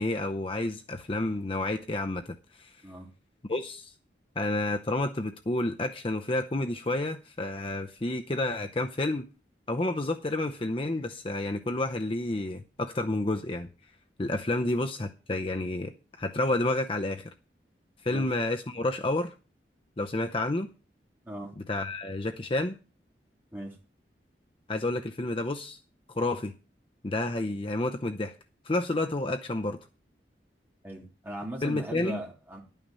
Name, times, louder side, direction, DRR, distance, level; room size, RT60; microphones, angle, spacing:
voice 1, 0.0-2.8 3.5-3.9 4.4-9.3 9.7-13.7 14.2-15.9 16.2-17.3 18.0-19.3 20.0-20.7 21.7-22.8 24.7-25.8 26.1-26.5 27.0-28.4 28.6-29.8 31.6-32.2, left 2 dB, 30° left, 0.7 m, -30 dB
voice 2, 30.8-32.6, right 1 dB, 10° right, 3.3 m, -38 dB
11.5 x 9.1 x 5.5 m
head